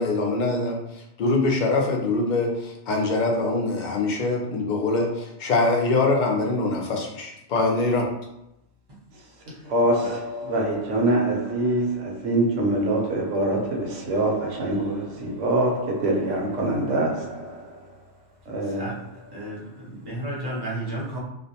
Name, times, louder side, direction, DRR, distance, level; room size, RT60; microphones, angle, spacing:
voice 1, 0.0-8.1, left 3 dB, 60° left, 0.5 m, -24 dB
voice 2, 9.6-17.7 18.5-19.0 20.4-20.6, right 1 dB, 80° right, 1.0 m, -24 dB
voice 3, 19.3-21.2, right 1 dB, 25° right, 0.6 m, -32 dB
2.5 x 2.0 x 2.7 m
omnidirectional pair, 1.2 m